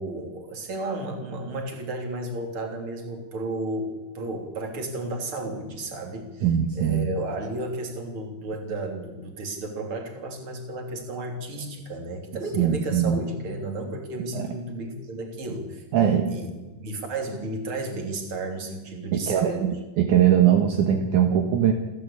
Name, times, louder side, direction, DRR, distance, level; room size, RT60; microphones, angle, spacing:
voice 1, 0.0-6.5 6.8-19.7, right 2 dB, 40° right, 3 dB, 3.7 m, -33 dB
voice 2, 6.4-7.1 12.5-13.2 14.3-14.5 15.9-16.3 19.1-21.7, right 9 dB, 65° right, 3 dB, 2.8 m, -21 dB
28.0 x 13.0 x 8.4 m, 1.2 s
omnidirectional pair, 3.9 m